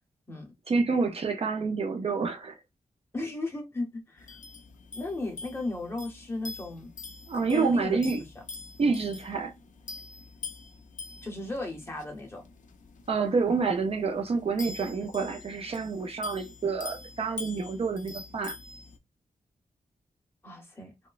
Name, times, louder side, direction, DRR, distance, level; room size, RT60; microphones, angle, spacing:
voice 1, 0.7-2.5 7.3-8.2 8.8-9.5 13.1-18.6, right 4 dB, 45° right, 0.4 m, -28 dB
voice 2, 3.1-4.4 4.9-6.9 7.5-8.0 11.2-12.4 20.4-20.9, left 2 dB, 15° left, 0.7 m, -35 dB
sound 1, 4.2-19.0, left 4 dB, 65° left, 0.4 m, -45 dB
3.0 x 2.0 x 2.3 m
wide cardioid pair, 175°, 14 cm